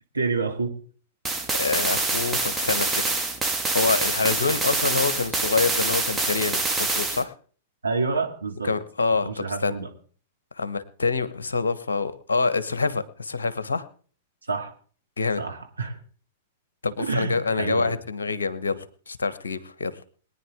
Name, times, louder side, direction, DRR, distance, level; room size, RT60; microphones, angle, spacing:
voice 1, 0.1-0.7 7.8-8.7 9.2-9.9 14.5-14.7 15.4-16.0 17.0-18.0, right 4 dB, 80° right, 3 dB, 2.2 m, -28 dB
sound 1, 1.2-7.2, right 3 dB, 10° right, 1.9 m, -26 dB
voice 2, 1.6-3.2 3.7-7.3 8.6-9.8 10.6-13.8 15.2-15.4 16.8-20.0, left 4 dB, 70° left, 14 dB, 1.1 m, -26 dB
22.0 x 9.8 x 3.6 m, 0.43 s
figure-of-eight pair, 100°, 0 cm